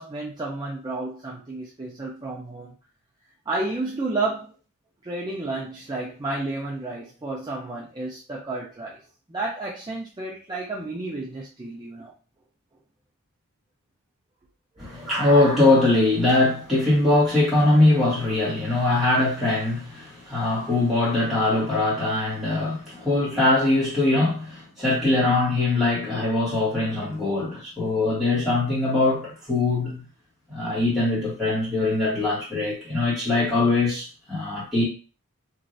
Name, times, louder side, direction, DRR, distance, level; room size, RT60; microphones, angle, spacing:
voice 1, 0.0-2.7 3.5-4.5 5.0-9.0 9.3-12.1 14.8-15.3, right 2 dB, 20° right, 0.4 m, -31 dB
voice 2, 14.8-30.0 30.5-34.8, left 2 dB, ahead, 1.3 m, -22 dB
3.0 x 2.5 x 2.6 m
head